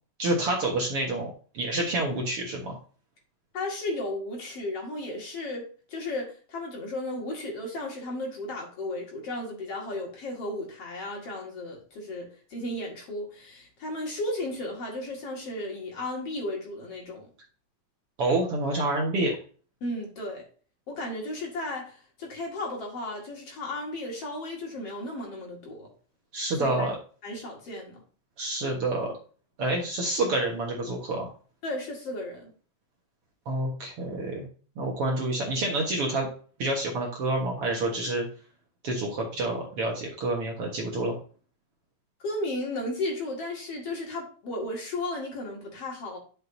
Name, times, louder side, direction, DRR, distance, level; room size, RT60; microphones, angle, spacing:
voice 1, 0.2-2.8 18.2-19.4 26.3-27.0 28.4-29.1 29.6-31.3 33.5-34.5 34.8-36.3 36.6-38.3 38.8-41.1, right 2 dB, 55° right, -1 dB, 2.0 m, -28 dB
voice 2, 3.5-17.3 19.8-20.4 20.9-25.9 26.5-26.9 27.2-28.0 31.6-32.5 42.2-46.2, left 1 dB, 50° left, -1 dB, 2.8 m, -34 dB
11.0 x 6.4 x 2.7 m, 0.40 s
omnidirectional pair, 3.8 m